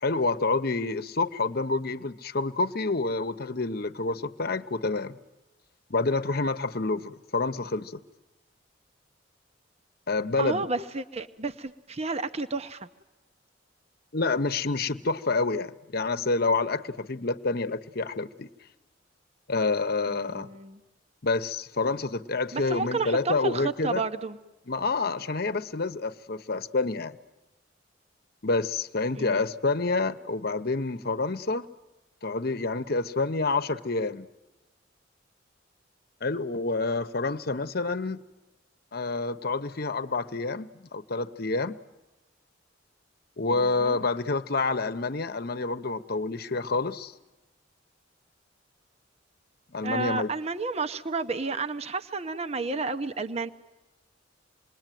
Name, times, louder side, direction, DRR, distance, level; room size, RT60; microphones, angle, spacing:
voice 1, 0.0-5.2 5.9-8.0 10.1-10.6 14.1-18.5 19.5-20.5 21.2-24.0 24.7-27.2 28.4-31.7 32.2-34.3 36.2-38.2 38.9-41.8 43.4-47.1 49.7-50.3, left 3 dB, 55° left, 11 dB, 1.0 m, -28 dB
voice 2, 10.4-12.9 20.1-20.8 22.5-24.4 29.1-29.5 43.5-44.0 49.8-53.5, right 3 dB, 35° right, 9 dB, 0.8 m, -31 dB
27.0 x 21.0 x 9.2 m, 1.1 s
head